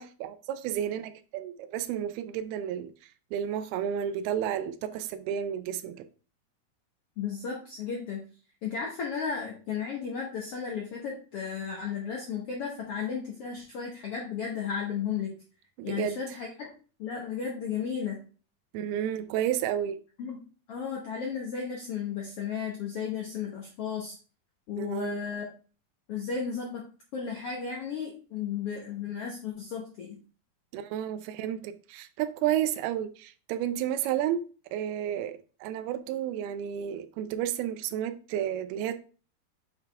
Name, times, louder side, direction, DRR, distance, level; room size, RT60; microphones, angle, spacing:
voice 1, 0.0-2.9 3.3-6.0 15.8-16.2 18.7-20.0 24.8-25.2 30.7-34.4 34.7-39.0, right 10 dB, 85° right, 2.6 m, -31 dB
voice 2, 7.2-8.2 8.6-15.3 15.8-16.7 17.0-18.2 20.2-20.4 20.7-24.1 24.7-25.5 26.1-26.8 27.1-30.2, left 6 dB, 85° left, 1.3 m, -34 dB
6.9 x 5.9 x 3.3 m
omnidirectional pair, 4.4 m